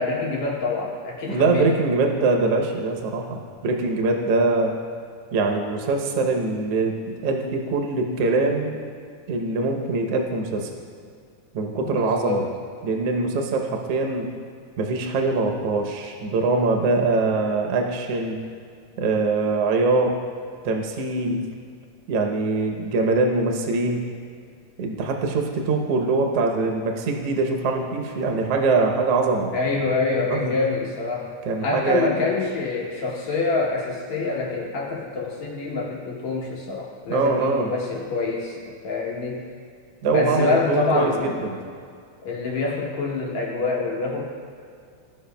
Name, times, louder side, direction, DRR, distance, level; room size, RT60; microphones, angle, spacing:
voice 1, 0.0-1.7 11.7-12.5 29.5-31.3 31.6-39.4 40.1-41.4 42.2-44.3, left 3 dB, 70° left, -3 dB, 2.2 m, -26 dB
voice 2, 1.3-4.8 5.3-8.8 9.3-10.7 11.5-12.4 12.8-14.3 14.8-18.4 19.0-20.2 20.6-21.5 22.1-24.1 24.8-29.5 30.3-30.5 31.4-32.2 37.1-37.7 40.0-41.6, right 3 dB, 70° right, 2 dB, 1.5 m, -23 dB
15.5 x 5.6 x 2.2 m, 2.2 s
omnidirectional pair, 3.6 m